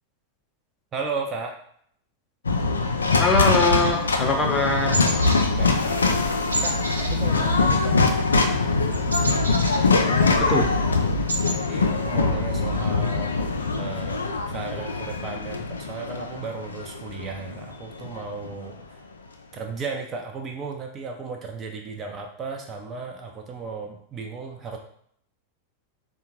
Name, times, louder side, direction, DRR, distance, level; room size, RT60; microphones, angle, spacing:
voice 1, 0.9-1.6 5.6-5.9 6.6-7.9 11.7-13.3 13.8-18.8 19.5-24.8, right 4 dB, 25° right, 1 dB, 0.5 m, -35 dB
sound 1, 2.4-18.7, left 3 dB, 75° left, 0.3 m, -23 dB
voice 2, 3.2-5.0 9.9-10.6, left 3 dB, 20° left, 1 dB, 0.5 m, -23 dB
sound 2, 3.5-4.6 4.9-5.5 5.8-6.0 6.5-8.0 8.3-10.4 10.8-10.9 11.1-11.6, right 2 dB, 75° right, 0.4 m, -31 dB
3.5 x 2.3 x 3.0 m, 0.64 s
figure-of-eight pair, 90°, 0 cm